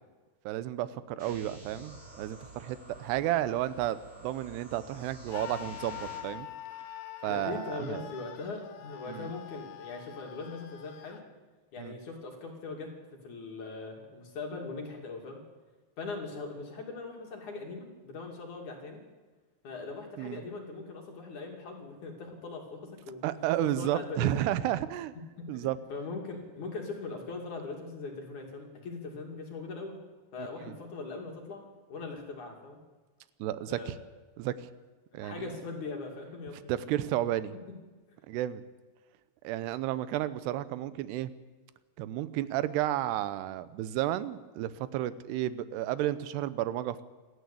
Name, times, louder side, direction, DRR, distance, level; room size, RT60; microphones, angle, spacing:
voice 1, 0.4-6.5 7.2-8.1 9.1-9.3 11.8-12.0 20.2-20.4 23.2-25.2 25.5-25.8 30.4-30.8 33.4-34.0 34.4-34.7 35.1-35.5 36.7-37.6 38.3-38.6 39.4-41.3 42.0-47.0, right 13 dB, 75° right, 15 dB, 2.7 m, -32 dB
sound 1, 1.2-6.2, right 2 dB, 15° right, 4.7 m, -49 dB
Screaming, 5.3-11.2, left 11 dB, 70° left, 3.5 m, -45 dB
voice 2, 7.3-11.2 11.7-12.9 13.2-15.4 16.0-19.0 19.6-23.2 23.6-24.5 25.4-30.0 30.3-32.8 33.7-33.9 35.2-36.6, left 3 dB, 45° left, 1 dB, 3.7 m, -40 dB
27.0 x 13.0 x 8.5 m, 1.3 s
omnidirectional pair, 5.3 m